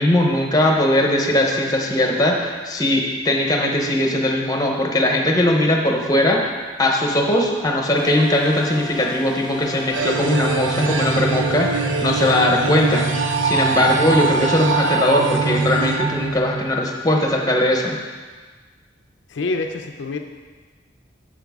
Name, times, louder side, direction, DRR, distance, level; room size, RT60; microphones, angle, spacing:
voice 1, 0.0-6.4 6.8-13.1 13.4-18.0, left 1 dB, 20° left, 1 dB, 0.8 m, -19 dB
sound 1, 8.0-15.0, left 2 dB, 25° right, 0.7 m, -36 dB
sound 2, 9.9-16.9, right 4 dB, 90° right, 0.6 m, -23 dB
voice 2, 19.3-20.2, left 3 dB, 75° left, 5 dB, 0.5 m, -26 dB
7.6 x 6.5 x 3.6 m, 1.4 s
head